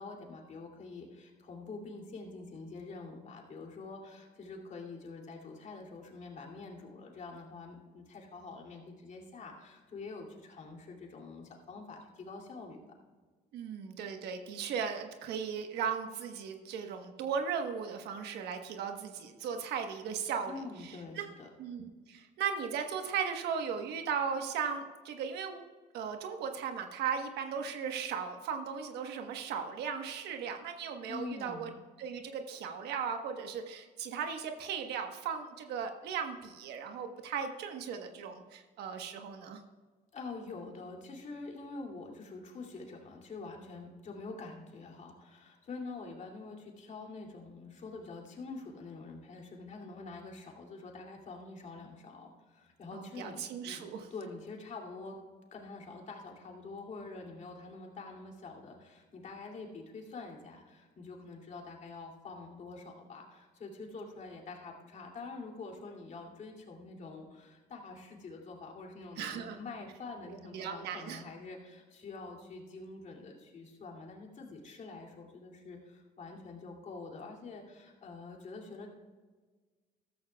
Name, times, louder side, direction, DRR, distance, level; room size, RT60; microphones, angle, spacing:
voice 1, 0.0-12.8 20.5-21.5 31.1-31.7 40.1-53.8 54.1-55.2 55.5-78.9, left 3 dB, 45° left, 1 dB, 2.7 m, -46 dB
voice 2, 13.5-20.5 20.8-21.3 21.6-25.6 25.9-31.7 32.0-39.6 52.9-54.1 69.2-69.6 70.3-71.2, right 7 dB, 80° right, 5 dB, 1.3 m, -37 dB
14.0 x 13.5 x 2.3 m, 1.4 s
cardioid pair, 110°, 17 cm